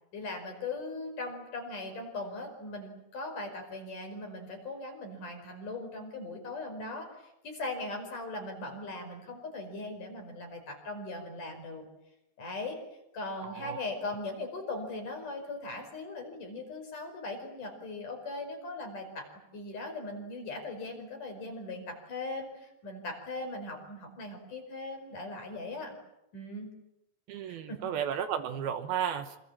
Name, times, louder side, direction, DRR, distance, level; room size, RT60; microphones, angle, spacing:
voice 1, 0.1-11.8 12.4-12.8 13.1-19.3 19.5-25.9 26.3-26.7 27.5-27.8, left 2 dB, 50° left, 4 dB, 6.6 m, -39 dB
voice 2, 13.4-13.8 27.3-29.4, right 9 dB, 70° right, 9 dB, 2.8 m, -33 dB
27.0 x 27.0 x 7.5 m, 0.88 s
omnidirectional pair, 4.9 m